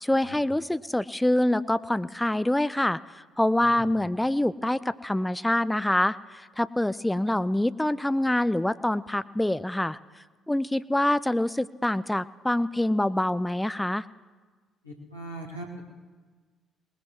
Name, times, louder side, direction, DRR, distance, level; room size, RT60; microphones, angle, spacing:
voice 1, 0.0-3.0 3.4-10.0 10.5-14.0, left 1 dB, 10° left, 16 dB, 0.4 m, -25 dB
voice 2, 3.6-3.9 14.8-15.8, right 1 dB, 85° left, -2 dB, 1.8 m, -40 dB
22.5 x 20.0 x 3.1 m, 1.4 s
figure-of-eight pair, 45°, 0 cm